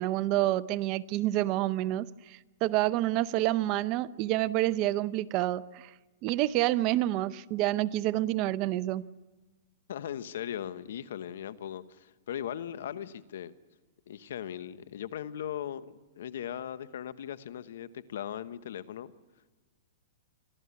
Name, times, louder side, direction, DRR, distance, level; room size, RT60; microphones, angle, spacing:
voice 1, 0.0-5.9 6.2-9.0, right 15 dB, 40° right, 0.6 m, -28 dB
voice 2, 9.9-13.5 14.1-19.1, left 10 dB, 70° left, 1.1 m, -38 dB
26.0 x 13.0 x 9.6 m
hypercardioid pair, 140°, 0 cm